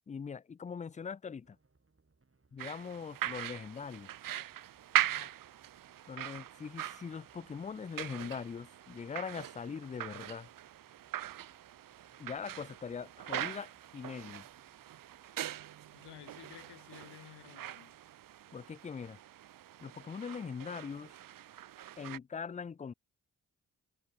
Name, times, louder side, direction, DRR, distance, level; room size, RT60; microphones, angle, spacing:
voice 1, 0.1-1.6 2.5-4.1 6.1-10.5 12.2-14.4 18.5-19.2 19.8-21.1 22.0-22.9, left 6 dB, 20° left, 0.4 m, -42 dB
sound 1, 1.4-17.2, right 3 dB, 35° right, 3.8 m, -72 dB
Kitchen Ambiance - Making Breakfast, 2.6-22.2, right 12 dB, 55° right, 0.6 m, -41 dB
voice 2, 5.0-5.4 15.9-18.0, left 13 dB, 85° left, 1.1 m, -54 dB
supercardioid pair, 40°, 40 cm